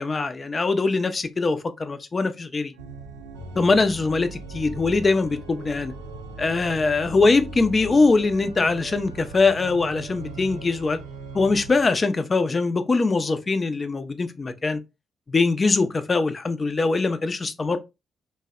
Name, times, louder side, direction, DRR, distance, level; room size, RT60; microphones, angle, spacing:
voice 1, 0.0-2.7 3.6-5.9 6.4-11.0 11.3-14.8 15.3-17.8, left 3 dB, 40° left, 0.4 m, -22 dB
Organ, 2.7-12.0, right 3 dB, 90° right, 0.3 m, -39 dB
2.6 x 2.1 x 2.3 m
hypercardioid pair, 45°, 0 cm